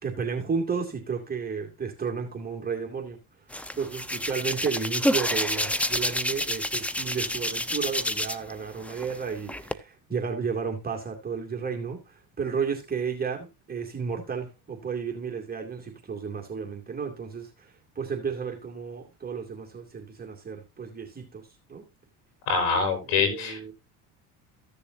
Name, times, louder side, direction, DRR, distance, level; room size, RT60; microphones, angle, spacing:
voice 1, 0.0-3.2 3.7-21.8 23.0-23.7, right 6 dB, 20° right, 2.3 m, -33 dB
Hands, 3.5-8.5 8.8-9.7, left 1 dB, 5° left, 0.6 m, -28 dB
voice 2, 22.5-23.7, left 5 dB, 80° left, 4.1 m, -25 dB
15.0 x 6.9 x 2.6 m
supercardioid pair, 100°, 41 cm